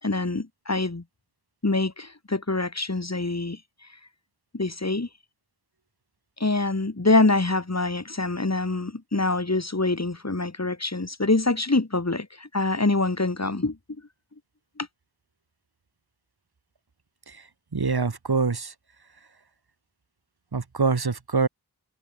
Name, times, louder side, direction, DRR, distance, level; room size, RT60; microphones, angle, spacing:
voice 1, 0.0-1.0 1.6-3.6 4.5-5.1 6.4-13.8 14.8-14.9, left 2 dB, 45° left, 4.1 m, -25 dB
voice 2, 17.7-18.7 20.5-21.5, right 4 dB, 85° right, 3.2 m, -25 dB
open air
wide cardioid pair, 60°, 37 cm